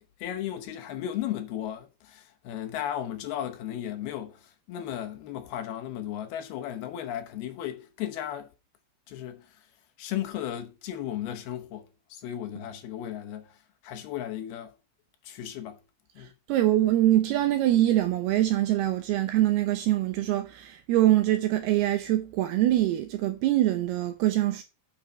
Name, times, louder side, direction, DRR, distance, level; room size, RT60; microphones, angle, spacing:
voice 1, 0.0-8.5 9.1-9.5 10.0-13.6 13.8-14.7 15.2-15.8 16.2-16.3, left 11 dB, 70° left, 2.6 m, -35 dB
voice 2, 16.2-24.6, right 14 dB, 75° right, 2.4 m, -24 dB
9.9 x 6.3 x 4.0 m
omnidirectional pair, 5.2 m